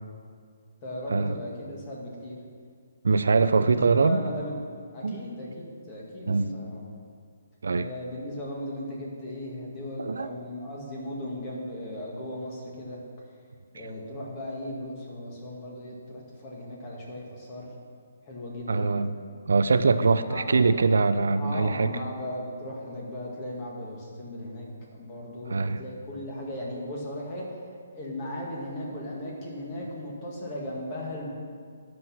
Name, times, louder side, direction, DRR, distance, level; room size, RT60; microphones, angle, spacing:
voice 1, 0.8-2.4 3.6-4.6 4.9-6.8 7.7-13.0 13.7-17.7 18.2-19.0 20.0-20.6 21.4-27.6 27.9-31.3, left 1 dB, 25° left, -3 dB, 1.9 m, -37 dB
voice 2, 3.0-4.2 5.0-5.2 6.3-6.5 7.6-7.9 10.0-10.3 18.7-19.1 19.5-21.9 25.5-25.8, right 4 dB, 85° right, 11 dB, 0.5 m, -23 dB
11.0 x 6.1 x 6.1 m, 2.1 s
hypercardioid pair, 170°, 0 cm